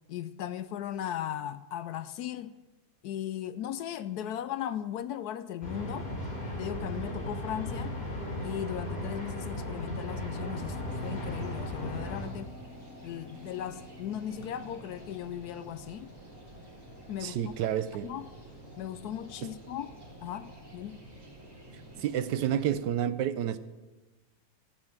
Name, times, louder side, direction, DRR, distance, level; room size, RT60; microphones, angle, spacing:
voice 1, 0.1-2.6 3.0-6.1 6.6-7.9 8.4-10.8 11.0-12.5 13.0-16.1 17.1-17.5 18.0-18.3 18.8-19.9 20.2-21.0, left 10 dB, 75° left, 1.0 m, -37 dB
sound 1, 5.6-12.3, left 1 dB, 30° left, 3.1 m, -36 dB
sound 2, 10.3-21.0, left 3 dB, 55° left, 2.2 m, -53 dB
sound 3, 10.9-22.8, right 1 dB, 10° right, 2.8 m, -49 dB
voice 2, 17.2-18.1 22.0-23.6, right 10 dB, 80° right, 1.3 m, -29 dB
13.5 x 8.7 x 7.2 m
omnidirectional pair, 1.9 m